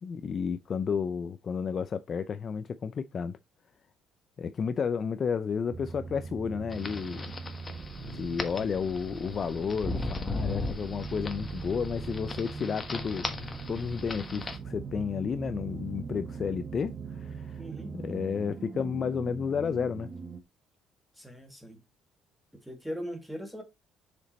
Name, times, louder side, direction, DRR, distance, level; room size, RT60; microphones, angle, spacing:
voice 1, 0.0-3.4 4.4-7.3 8.0-17.6 17.9-20.1, left 6 dB, 35° left, 0.5 m, -32 dB
sound 1, 5.7-20.4, right 5 dB, 35° right, 0.9 m, -41 dB
sound 2, 6.7-14.6, left 3 dB, 20° left, 1.3 m, -38 dB
voice 2, 17.6-17.9 21.2-21.8 22.6-23.6, equal, ahead, 1.9 m, -39 dB
6.9 x 5.2 x 4.1 m
cardioid pair, 140°, 0 cm